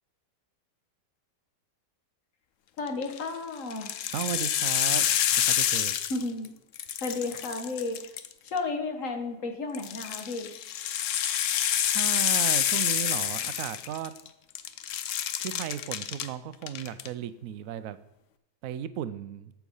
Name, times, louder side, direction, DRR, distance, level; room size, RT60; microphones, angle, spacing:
voice 1, 2.8-3.9 6.1-6.5 7.0-8.1 8.4-10.5, left 3 dB, 50° left, 6 dB, 1.5 m, -33 dB
sound 1, 2.9-3.2 3.7-6.5 6.7-8.6 9.7-14.3 14.6-16.3 16.6-17.1, left 10 dB, 65° left, 0.8 m, -28 dB
voice 2, 4.1-5.0 5.3-5.9 11.8-14.1 15.4-18.0 18.6-19.5, right 10 dB, 70° right, 14 dB, 0.8 m, -35 dB
13.5 x 4.7 x 5.4 m, 0.87 s
omnidirectional pair, 1.9 m